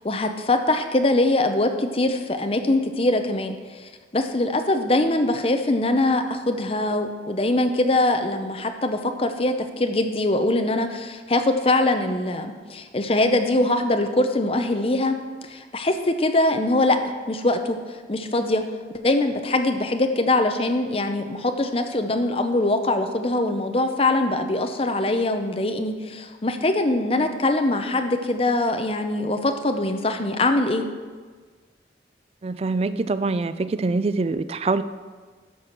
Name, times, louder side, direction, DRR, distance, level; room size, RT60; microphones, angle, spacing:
voice 1, 0.0-15.2 15.4-17.0 17.3-18.6 19.0-30.9, left 2 dB, 30° left, 6 dB, 0.7 m, -22 dB
voice 2, 32.4-34.8, right 3 dB, 35° right, 13 dB, 0.3 m, -24 dB
12.5 x 4.8 x 5.9 m, 1.5 s
head